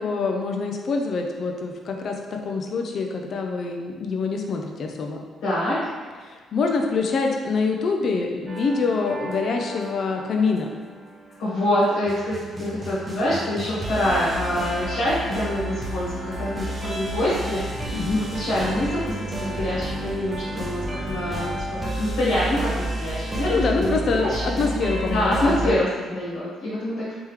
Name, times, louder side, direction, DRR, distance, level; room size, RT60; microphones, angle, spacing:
voice 1, 0.0-5.2 6.2-10.7 17.9-18.2 23.5-25.8, left 4 dB, 55° left, 2 dB, 0.5 m, -25 dB
voice 2, 5.4-5.9 11.4-21.5 22.0-24.4 25.1-27.1, left 1 dB, 85° left, -10 dB, 1.5 m, -25 dB
sound 1, 8.5-25.7, right 1 dB, 20° right, 0.8 m, -31 dB
3.5 x 2.9 x 3.2 m, 1.5 s
cardioid pair, 90°, 0 cm